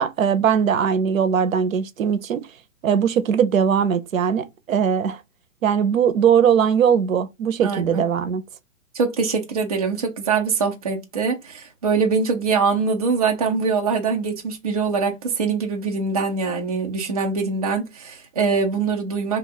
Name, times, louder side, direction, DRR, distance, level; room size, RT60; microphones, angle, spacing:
voice 1, 0.0-2.5 2.8-5.2 5.6-8.4, right 7 dB, 80° right, 0.7 m, -20 dB
voice 2, 7.6-8.0 8.9-19.4, right 5 dB, 30° right, 0.5 m, -23 dB
2.8 x 2.4 x 3.9 m
hypercardioid pair, 170°, 40 cm